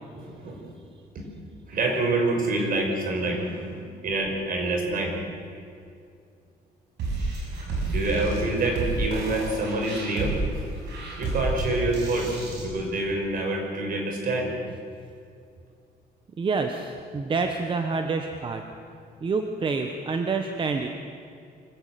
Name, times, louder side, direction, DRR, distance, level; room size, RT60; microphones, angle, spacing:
voice 1, 0.1-0.6 1.1-1.3 1.7-3.5 4.0-5.2 7.9-10.4 11.2-14.5, right 2 dB, 55° right, 2 dB, 5.6 m, -26 dB
voice 2, 3.4-4.0 16.4-18.6 19.2-20.9, right 4 dB, 30° right, 5 dB, 1.2 m, -28 dB
sound 1, 7.0-12.6, right 3 dB, 80° right, 6.8 m, -30 dB
24.5 x 15.5 x 9.3 m, 2.4 s
cardioid pair, 155°, 17 cm